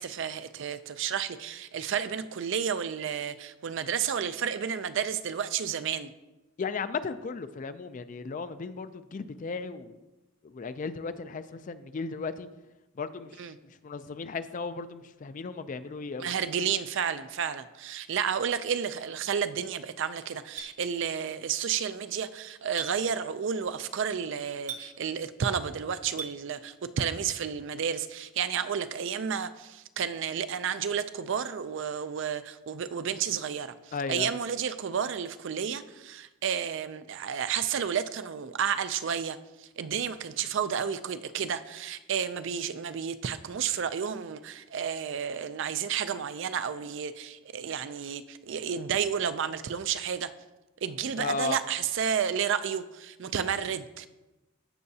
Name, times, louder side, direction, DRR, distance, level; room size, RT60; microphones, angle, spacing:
voice 1, 0.0-6.1 13.4-13.6 16.2-50.3 50.8-54.1, right 7 dB, 60° right, 0.4 m, -31 dB
voice 2, 6.6-10.0 10.4-12.5 13.0-13.5 13.8-16.3 33.9-34.3 51.2-51.6, left 4 dB, 40° left, 0.4 m, -35 dB
Chink clink, 20.6-20.7 22.8-22.9 24.7-24.9 26.2-26.3, right 6 dB, 35° right, 0.8 m, -36 dB
15.0 x 5.7 x 2.8 m
head